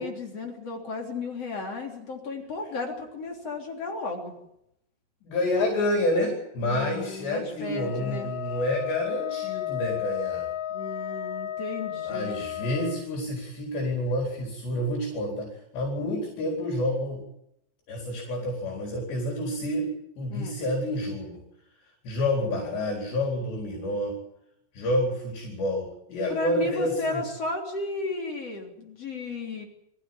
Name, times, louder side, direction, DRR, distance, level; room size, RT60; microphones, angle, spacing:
voice 1, 0.0-4.4 6.6-8.3 10.7-12.4 20.3-20.6 26.3-29.7, left 3 dB, 35° left, 1 dB, 3.8 m, -34 dB
voice 2, 5.2-10.5 12.1-17.2 17.9-21.4 22.0-24.2 24.7-27.2, left 1 dB, 65° left, -1 dB, 6.5 m, -29 dB
Wind instrument woodwind instrument, 7.7-13.0, left 12 dB, 85° left, 4.7 m, -33 dB
23.5 x 15.5 x 8.9 m, 0.79 s
omnidirectional pair, 5.5 m